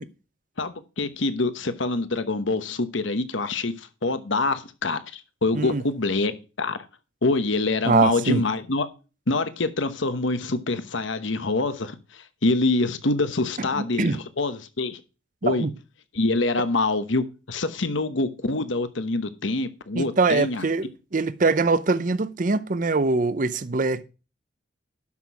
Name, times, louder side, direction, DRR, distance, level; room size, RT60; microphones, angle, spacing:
voice 1, 0.6-6.8 7.2-8.9 9.3-15.0 15.4-15.7 16.1-20.7, left 2 dB, 75° left, 1.1 m, -25 dB
voice 2, 7.9-8.4 13.8-14.2 15.5-15.7 19.9-24.0, right 3 dB, 40° right, 0.6 m, -23 dB
12.0 x 6.2 x 4.7 m
head